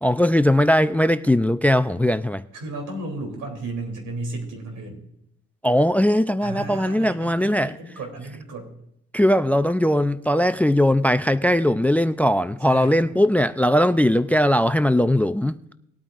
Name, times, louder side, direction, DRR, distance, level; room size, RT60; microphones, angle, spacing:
voice 1, 0.0-2.4 5.6-7.8 9.1-15.6, left 1 dB, 5° left, 0.4 m, -19 dB
voice 2, 2.5-5.0 6.4-8.7 12.7-13.0, right 2 dB, 80° right, 3.4 m, -34 dB
20.0 x 8.7 x 2.6 m
cardioid pair, 90°, 30 cm